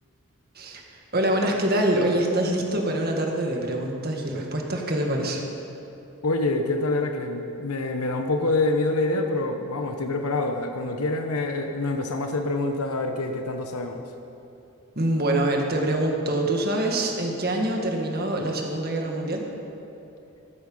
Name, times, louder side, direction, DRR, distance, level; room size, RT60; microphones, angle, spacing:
voice 1, 0.6-5.4 15.0-19.5, right 1 dB, 45° right, 1 dB, 1.8 m, -25 dB
voice 2, 6.2-14.0, left 2 dB, 90° left, 5 dB, 1.0 m, -26 dB
13.5 x 13.5 x 5.5 m, 2.9 s
head